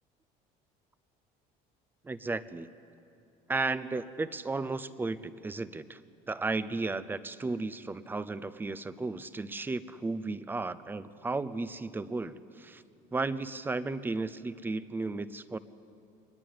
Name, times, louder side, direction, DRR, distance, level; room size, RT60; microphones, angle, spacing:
voice 1, 2.0-2.7 3.5-6.0 6.3-12.8 13.1-15.6, right 3 dB, 15° right, 15 dB, 0.7 m, -34 dB
23.5 x 20.5 x 9.4 m, 2.6 s
cardioid pair, 145°, 16 cm